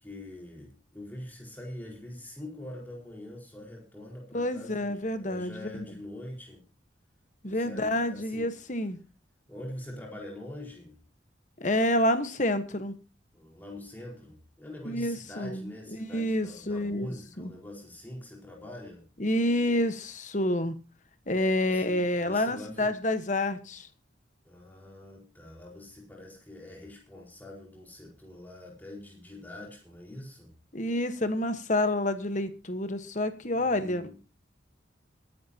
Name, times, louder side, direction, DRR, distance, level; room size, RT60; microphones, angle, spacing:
voice 1, 0.0-6.6 7.4-8.5 9.5-11.0 13.3-19.0 21.6-22.9 24.4-30.5 33.5-34.2, left 1 dB, 10° left, -3 dB, 4.7 m, -44 dB
voice 2, 4.3-5.5 7.4-9.0 11.6-12.9 14.8-17.5 19.2-20.8 21.3-23.9 30.7-34.0, left 1 dB, 40° left, 10 dB, 1.2 m, -28 dB
23.5 x 11.0 x 2.9 m, 0.33 s
head